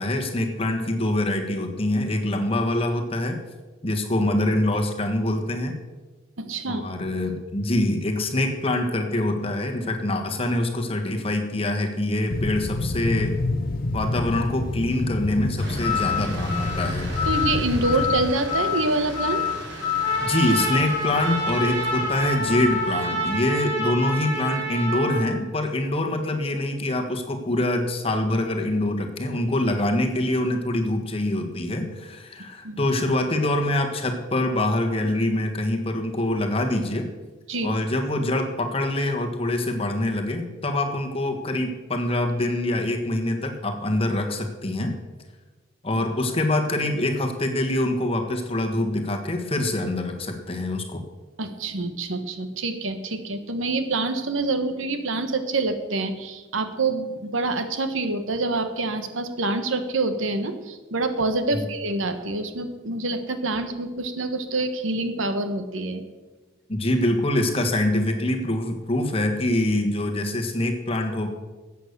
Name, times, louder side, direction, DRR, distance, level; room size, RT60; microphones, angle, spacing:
voice 1, 0.0-3.4 3.8-5.7 6.7-13.4 13.9-17.1 20.2-37.1 37.6-45.0 45.8-51.0 61.5-61.7 66.7-71.3, left 1 dB, 30° left, 4 dB, 1.5 m, -25 dB
voice 2, 6.4-6.8 17.3-19.4 32.6-32.8 37.5-37.7 51.4-66.0, right 2 dB, 80° right, 9 dB, 1.3 m, -26 dB
sound 1, 12.3-18.3, left 2 dB, 45° left, 0.6 m, -28 dB
sound 2, 15.6-23.2, left 6 dB, 55° right, 5.4 m, -29 dB
Trumpet, 20.0-25.3, right 1 dB, 35° right, 5.2 m, -28 dB
13.5 x 8.4 x 6.7 m, 1.2 s
head